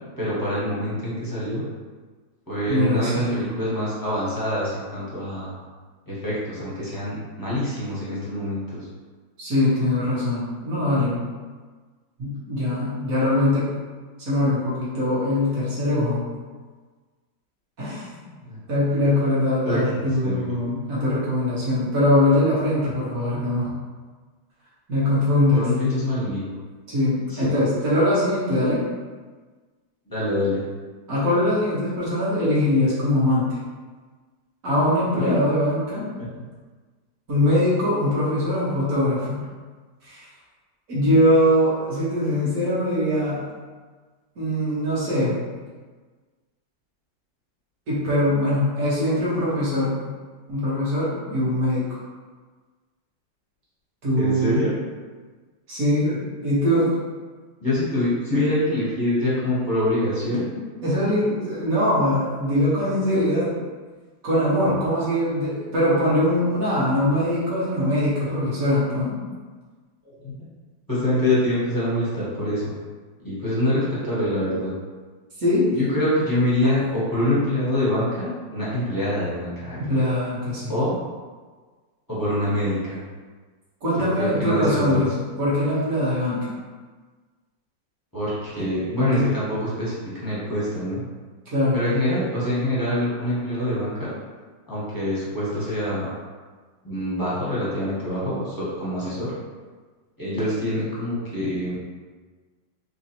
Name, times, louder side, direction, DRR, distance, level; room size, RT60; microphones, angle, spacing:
voice 1, 0.2-1.6 2.5-5.5 6.1-8.9 18.5-18.6 19.6-20.0 20.2-20.6 25.5-26.5 27.3-27.5 30.1-30.6 35.1-35.3 54.2-54.7 56.0-56.2 57.6-60.6 70.2-70.3 70.9-72.8 73.2-74.7 75.8-79.8 80.7-80.9 82.1-83.0 84.2-85.0 88.1-91.0 91.7-94.1 94.7-96.1 96.8-99.3 100.2-101.8, left 1 dB, 15° left, -10 dB, 0.7 m, -25 dB
voice 2, 2.7-3.5 9.4-11.2 12.2-13.7 14.2-16.2 17.8-18.1 18.7-23.7 24.9-25.6 26.9-28.8 31.1-33.4 34.6-36.1 37.3-39.4 40.0-40.3 40.9-43.4 44.4-45.4 47.9-50.0 50.5-52.0 54.0-54.7 55.7-56.9 60.8-63.5 64.2-69.2 75.4-75.7 76.6-76.7 79.8-80.7 83.8-85.1 85.4-86.5 89.0-89.3 91.5-91.8, left 1 dB, 50° right, -9 dB, 1.6 m, -22 dB
3.7 x 2.9 x 2.9 m, 1.4 s
omnidirectional pair, 1.9 m